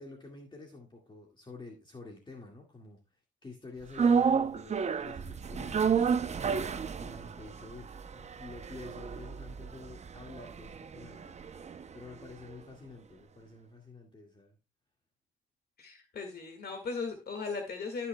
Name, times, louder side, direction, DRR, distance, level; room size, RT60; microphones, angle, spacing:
voice 1, 0.0-6.1 7.0-11.4 11.9-14.6, left 3 dB, 25° left, 1 dB, 1.9 m, -49 dB
sound 1, 4.0-12.3 12.5-12.6, right 6 dB, 35° right, 0.6 m, -31 dB
voice 2, 15.8-18.1, left 4 dB, 50° left, 5 dB, 1.9 m, -37 dB
14.5 x 6.1 x 2.2 m, 0.29 s
cardioid pair, 90°, 20 cm